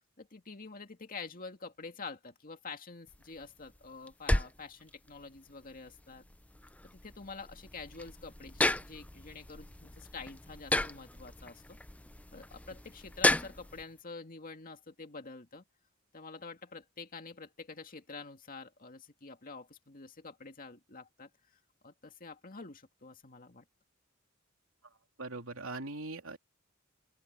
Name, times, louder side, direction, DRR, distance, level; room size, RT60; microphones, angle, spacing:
voice 1, 0.2-6.2 6.9-11.8 12.3-15.6 16.1-23.6, left 4 dB, 45° left, 2.1 m, -47 dB
sound 1, 3.1-13.8, left 1 dB, 5° left, 0.6 m, -35 dB
voice 2, 25.2-26.4, right 2 dB, 85° right, 3.3 m, -40 dB
open air
head